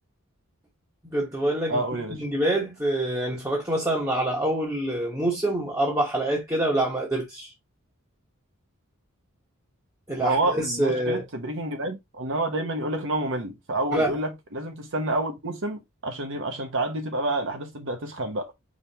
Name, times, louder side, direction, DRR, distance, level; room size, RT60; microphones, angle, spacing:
voice 1, 1.0-1.8 2.1-7.5 10.1-11.2 13.9-14.1, right 1 dB, 15° right, 1.1 m, -26 dB
voice 2, 1.7-2.2 10.2-18.5, right 2 dB, 60° right, 1.0 m, -29 dB
5.1 x 3.5 x 2.8 m
head